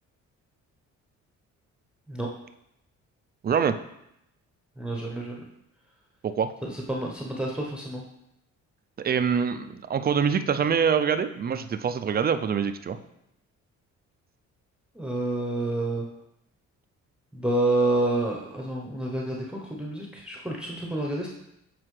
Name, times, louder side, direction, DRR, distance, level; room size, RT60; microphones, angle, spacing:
voice 1, 3.4-3.7 6.2-6.5 9.0-13.0, right 7 dB, 30° right, 10 dB, 0.4 m, -25 dB
voice 2, 4.8-5.4 6.6-8.0 15.0-16.1 17.3-21.3, right 2 dB, 5° right, -1 dB, 0.8 m, -28 dB
7.7 x 4.3 x 3.2 m, 0.80 s
cardioid pair, 90°, 30 cm